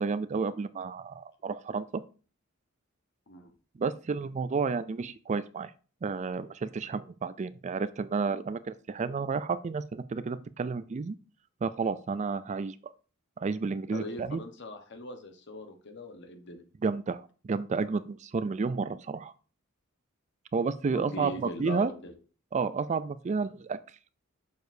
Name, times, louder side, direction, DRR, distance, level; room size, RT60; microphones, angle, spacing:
voice 1, 0.0-2.0 3.8-5.7 6.0-11.2 11.6-12.8 13.4-14.4 16.8-19.3 20.5-21.9 22.5-23.8, right 4 dB, 35° right, 15 dB, 0.4 m, -31 dB
voice 2, 13.9-16.6 20.9-22.1, left 1 dB, 60° left, 6 dB, 1.2 m, -40 dB
6.7 x 6.3 x 2.7 m, 0.37 s
head